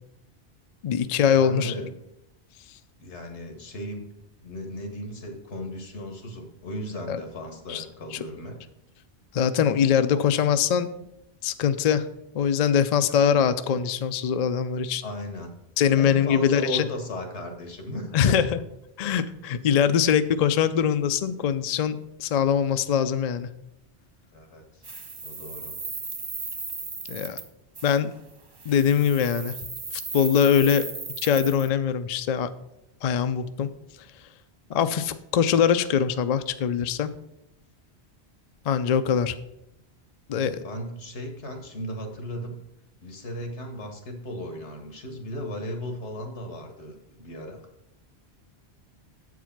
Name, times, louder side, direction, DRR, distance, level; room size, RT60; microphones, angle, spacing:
voice 1, 0.8-1.7 7.1-7.2 7.7-7.8 8.1-8.2 9.3-10.9 11.4-12.1 12.3-15.0 15.8-16.9 18.1-18.6 19.0-23.5 27.1-27.4 27.8-28.1 28.7-29.6 30.1-30.9 31.2-32.5 33.0-33.7 34.7-37.1 38.7-39.4 40.3-40.7, left 8 dB, 55° left, 11 dB, 0.4 m, -22 dB
voice 2, 1.4-1.9 3.0-4.0 4.4-8.6 13.0-13.2 15.0-15.6 16.0-18.4 24.3-24.8 25.2-25.8 40.3-42.6 43.0-47.6, equal, 85° left, 4 dB, 1.6 m, -36 dB
sound 1, 24.8-27.5 27.7-28.0 28.5-31.7, right 3 dB, 30° right, 0.6 m, -36 dB
7.9 x 4.8 x 5.8 m, 0.83 s
omnidirectional pair, 1.1 m